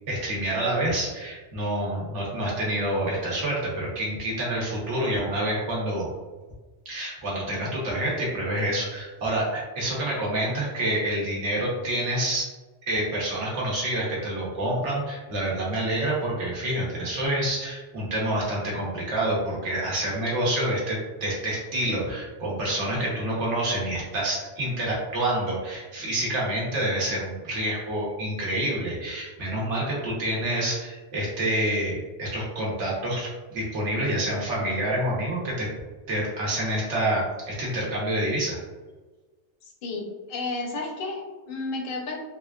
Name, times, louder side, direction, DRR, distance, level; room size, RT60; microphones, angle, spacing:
voice 1, 0.1-6.1 6.8-12.5 12.9-35.7 36.1-38.6, right 1 dB, 80° right, -5 dB, 1.3 m, -27 dB
voice 2, 39.8-42.2, left 3 dB, 60° left, 1 dB, 0.7 m, -32 dB
3.5 x 2.4 x 2.3 m, 1.3 s
omnidirectional pair, 1.2 m